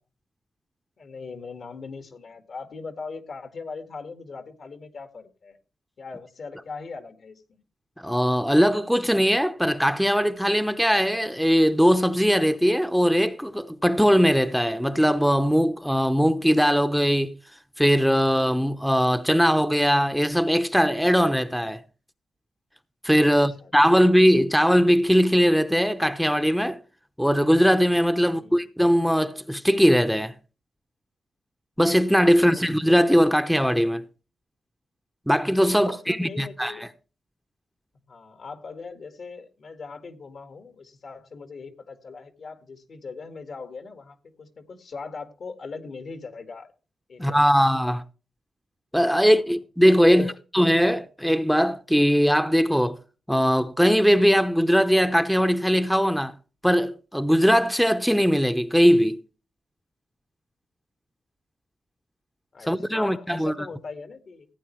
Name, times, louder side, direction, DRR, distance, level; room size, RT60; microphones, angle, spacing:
voice 1, 1.0-5.6 6.0-7.6 23.3-23.7 28.2-28.7 32.4-32.6 35.7-36.8 38.1-46.7 47.1-47.6 49.2-49.4 50.0-50.3 62.5-64.5, left 4 dB, 65° left, 1.9 m, -40 dB
voice 2, 8.0-17.3 17.8-21.8 23.0-26.8 27.2-30.3 31.8-34.0 35.3-36.8 47.2-48.0 48.9-53.0 53.3-56.3 56.6-59.2 62.7-63.5, equal, ahead, 0.8 m, -20 dB
15.5 x 8.9 x 3.1 m
cardioid pair, 55°, 0 cm